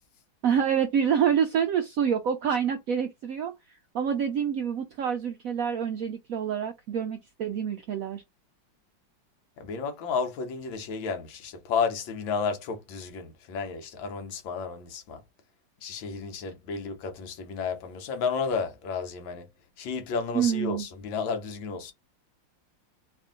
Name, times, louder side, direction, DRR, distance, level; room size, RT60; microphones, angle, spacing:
voice 1, 0.4-8.2 20.3-20.9, right 8 dB, 80° right, 0.7 m, -27 dB
voice 2, 9.6-15.2 15.8-19.5 19.8-21.9, left 5 dB, 90° left, 1.6 m, -32 dB
3.5 x 2.5 x 3.7 m
omnidirectional pair, 2.1 m